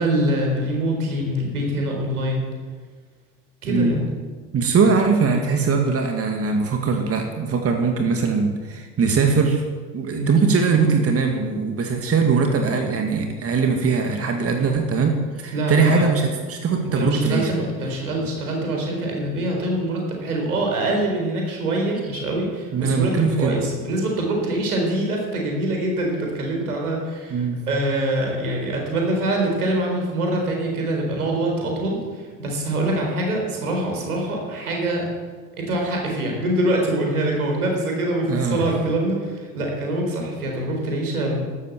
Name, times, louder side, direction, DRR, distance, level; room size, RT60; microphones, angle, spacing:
voice 1, 0.0-2.4 3.6-4.1 10.2-10.3 15.5-16.1 16.9-35.1 35.6-41.4, right 1 dB, 75° right, 1 dB, 4.2 m, -24 dB
voice 2, 4.5-9.6 9.9-17.5 22.7-23.6 27.3-27.6 38.3-38.7, right 5 dB, 30° right, 4 dB, 2.0 m, -21 dB
14.5 x 12.5 x 7.3 m, 1.5 s
figure-of-eight pair, 60°, 44 cm